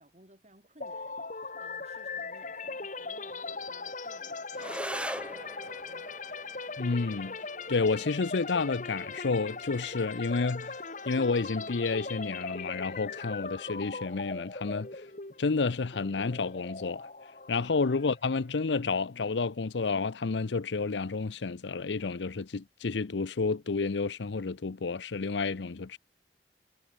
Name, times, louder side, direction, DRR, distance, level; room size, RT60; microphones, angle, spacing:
voice 1, 0.0-5.3 5.8-6.2 17.5-17.7, right 1 dB, 40° right, 6.4 m, -59 dB
sound 1, 0.8-18.6, left 4 dB, 45° left, 2.2 m, -40 dB
sound 2, 4.5-13.5, right 1 dB, 5° right, 1.8 m, -45 dB
voice 2, 6.8-7.4 7.7-10.8 11.1-14.9 15.4-17.1 17.5-26.0, left 4 dB, 90° left, 0.7 m, -30 dB
head